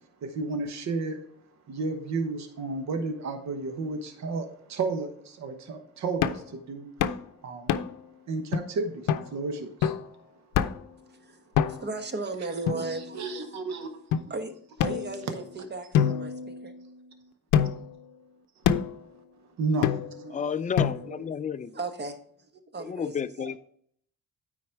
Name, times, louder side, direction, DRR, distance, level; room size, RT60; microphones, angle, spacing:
voice 1, 0.2-1.2 1.7-6.9 7.4-7.7 8.3-9.9 13.2-14.0 19.6-20.3, right 3 dB, 65° right, 7 dB, 1.1 m, -32 dB
sound 1, 6.2-6.5 7.0-7.2 7.7-8.1 8.5-8.6 9.1-9.3 9.8-10.1 10.6-10.9 11.6-12.0 12.7-13.4 14.1-14.2 14.8-15.5 15.9-17.0 17.5-18.0 18.7-19.0 19.8-20.3 20.8-21.3, left 8 dB, 80° left, 0.6 m, -27 dB
voice 2, 11.7-13.6 14.3-16.7 20.2-20.6 21.0-21.4 21.7-23.6, right 3 dB, 35° right, 8 dB, 1.1 m, -37 dB
voice 3, 20.3-21.7 22.8-23.6, left 7 dB, 25° left, 14 dB, 0.4 m, -31 dB
9.4 x 4.2 x 4.5 m, 0.63 s
cardioid pair, 90°, 30 cm